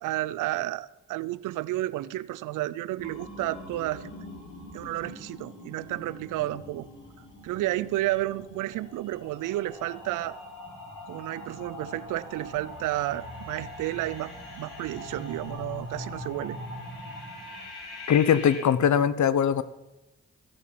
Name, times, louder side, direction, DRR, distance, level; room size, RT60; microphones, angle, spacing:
voice 1, 0.0-4.1 4.7-6.9 7.4-10.4 11.1-16.6, right 16 dB, 85° right, 0.5 m, -31 dB
sound 1, 3.0-18.6, left 1 dB, 90° left, 3.5 m, -42 dB
voice 2, 18.1-19.6, left 8 dB, 70° left, 0.9 m, -21 dB
15.5 x 8.3 x 7.4 m
supercardioid pair, 45°, 30 cm